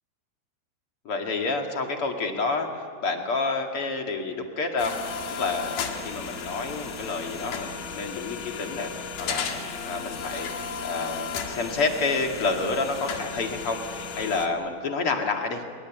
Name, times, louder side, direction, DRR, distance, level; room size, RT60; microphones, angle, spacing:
voice 1, 1.0-5.0 5.4-15.6, left 3 dB, 45° left, 3 dB, 2.1 m, -29 dB
sound 1, 4.8-14.5, left 5 dB, 60° left, 3.7 m, -34 dB
26.5 x 24.0 x 9.4 m, 2.4 s
omnidirectional pair, 5.4 m